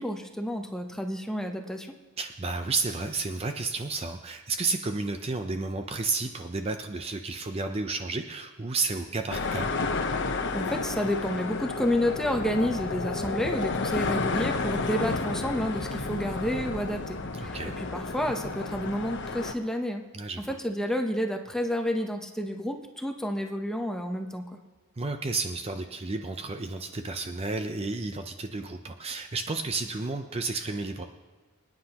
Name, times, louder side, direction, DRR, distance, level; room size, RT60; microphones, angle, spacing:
voice 1, 0.0-1.9 10.5-20.0 20.5-24.6, equal, ahead, 4 dB, 0.8 m, -30 dB
voice 2, 2.2-9.7 17.4-17.7 20.1-20.5 25.0-31.1, right 3 dB, 25° right, 6 dB, 0.5 m, -32 dB
sound 1, 9.3-19.5, left 3 dB, 55° left, 0.9 m, -31 dB
25.5 x 9.8 x 2.9 m, 1.3 s
head